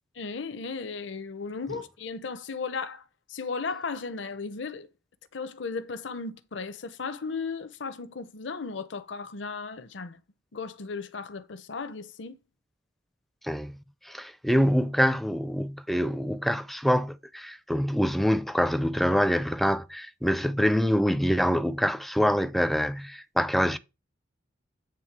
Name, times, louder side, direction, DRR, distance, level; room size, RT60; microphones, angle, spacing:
voice 1, 0.2-3.0 3.3-4.9 5.3-10.2 10.5-12.4, left 4 dB, 75° left, 0.7 m, -35 dB
voice 2, 13.4-13.8 14.1-23.8, equal, ahead, 0.4 m, -25 dB
9.0 x 3.5 x 5.9 m
head